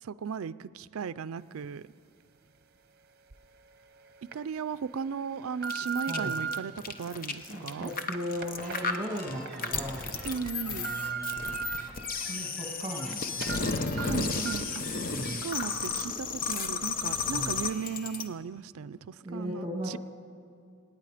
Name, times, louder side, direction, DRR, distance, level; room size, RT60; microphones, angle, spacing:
voice 1, 0.0-1.9 4.3-7.9 10.2-10.9 14.0-20.0, right 6 dB, 75° right, 0.4 m, -36 dB
sound 1, 3.3-3.4 4.0-4.3 5.0-6.6 7.3-9.6 10.0-10.1 10.5-11.8 12.3-13.1 13.4-13.6 14.0-14.1 14.5-14.7 15.1-15.2, right 6 dB, 45° right, 0.8 m, -37 dB
sound 2, 5.6-18.2, left 4 dB, 40° left, 0.8 m, -33 dB
voice 2, 6.1-6.4 7.5-10.2 10.6-11.6 12.3-14.5 15.1-15.5 17.3-17.6 19.2-20.0, equal, 20° right, 2.0 m, -37 dB
sound 3, 8.6-15.4, right 1 dB, 5° left, 2.0 m, -49 dB
26.5 x 9.7 x 5.0 m
head